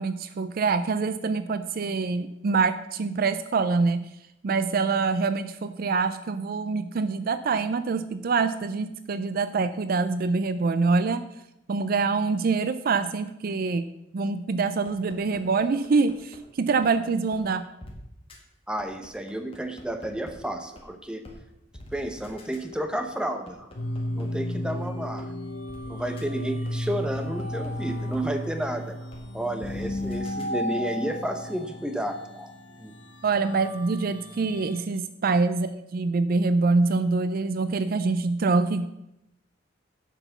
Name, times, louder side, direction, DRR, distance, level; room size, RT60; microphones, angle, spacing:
voice 1, 0.0-4.1 4.4-11.2 11.7-13.8 14.1-17.7 33.2-38.9, right 4 dB, 50° right, 12 dB, 0.4 m, -25 dB
sound 1, 14.9-16.4 16.8-16.9 17.3-17.4 17.8-17.9 18.3-18.4 18.8-20.3 20.8-20.9 21.2-21.4 21.7-24.2 24.7-24.8 25.2-25.3 25.7-25.8 26.2-26.3 26.7-28.2 28.6-28.7 29.1-29.2 29.6-30.4, left 1 dB, 30° left, 1.8 m, -44 dB
voice 2, 18.7-21.2 21.9-23.7 24.1-25.3 25.8-29.0 29.3-32.5 32.8-32.9, right 1 dB, 5° right, 6 dB, 0.8 m, -31 dB
sound 2, 23.8-34.8, left 1 dB, 80° left, 1.5 m, -34 dB
8.0 x 6.0 x 7.1 m, 0.86 s
head